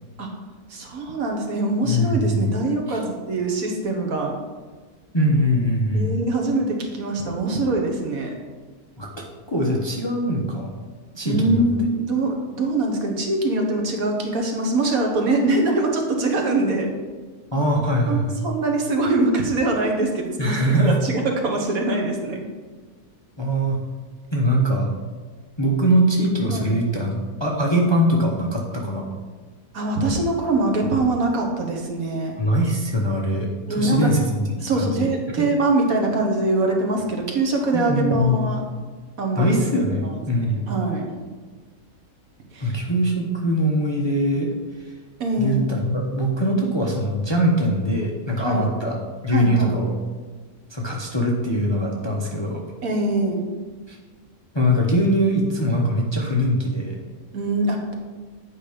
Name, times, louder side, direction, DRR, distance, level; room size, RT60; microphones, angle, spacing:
voice 1, 0.7-4.4 5.9-8.3 11.2-16.9 18.1-22.4 26.5-26.8 29.7-32.4 33.7-34.1 34.6-38.6 39.2-39.5 40.0-41.0 42.5-42.7 45.2-45.7 48.4-48.7 49.3-49.8 52.8-53.5 57.3-57.9, right 2 dB, 65° right, 2 dB, 1.6 m, -23 dB
voice 2, 1.8-2.5 2.9-3.0 5.1-6.2 9.0-9.1 9.5-10.7 11.2-11.6 17.5-18.3 20.4-21.0 23.4-23.8 24.3-24.9 25.6-27.1 27.4-29.1 32.4-34.4 34.7-35.1 35.4-35.5 37.7-38.4 39.4-40.6 42.6-44.5 45.4-49.0 49.2-49.9 50.7-52.6 53.9-54.0 54.5-57.0, equal, 20° left, -1 dB, 0.8 m, -22 dB
8.7 x 5.1 x 5.1 m, 1.4 s
omnidirectional pair, 1.6 m